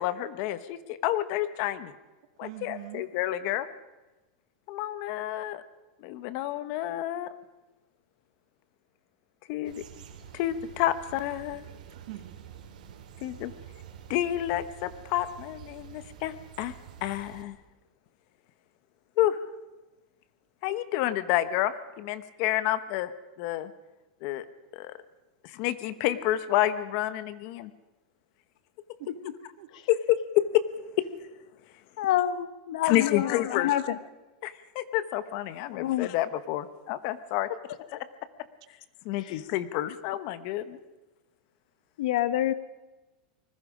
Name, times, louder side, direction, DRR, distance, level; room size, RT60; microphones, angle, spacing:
voice 1, 0.0-1.9 2.4-3.7 4.7-5.6 6.0-7.3 9.5-9.8 10.3-11.6 13.2-13.5 14.1-16.7 17.0-17.6 19.2-19.4 20.6-23.1 23.4-23.7 24.2-24.4 24.7-24.9 25.4-27.7 29.9-31.0 32.8-33.7 34.4-37.5 37.9-38.0 39.0-40.8, left 13 dB, 40° left, 14 dB, 1.0 m, -29 dB
voice 2, 2.4-3.0 11.9-12.6 29.0-29.7, right 15 dB, 55° right, 9 dB, 1.8 m, -44 dB
sound 1, 9.6-17.4, right 9 dB, 90° right, 3.4 m, -48 dB
voice 3, 32.0-34.0 35.7-36.1 39.2-39.4 42.0-42.5, left 12 dB, 65° left, 14 dB, 1.1 m, -28 dB
26.0 x 20.5 x 5.0 m, 1.1 s
supercardioid pair, 170°, 4 cm